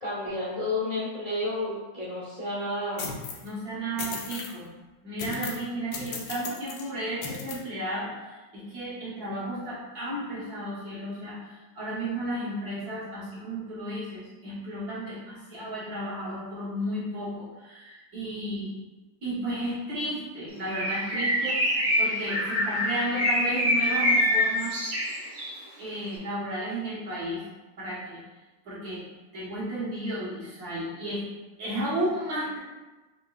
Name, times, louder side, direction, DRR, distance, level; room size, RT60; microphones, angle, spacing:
voice 1, 0.0-3.2, left 2 dB, 35° left, -8 dB, 0.6 m, -31 dB
sound 1, 3.0-3.5 4.0-4.5 5.2-5.7 5.9-6.8 7.2-7.6, left 5 dB, 80° left, 1.3 m, -36 dB
voice 2, 3.4-4.7 5.0-18.7 19.2-24.7 25.8-27.4 27.8-28.2 28.6-29.0 29.3-31.2 31.6-32.6, right 1 dB, 60° right, -8 dB, 1.7 m, -33 dB
Bird, 20.7-25.6, left 1 dB, 85° right, 1.9 m, -25 dB
5.1 x 2.8 x 2.3 m, 1.2 s
omnidirectional pair, 2.0 m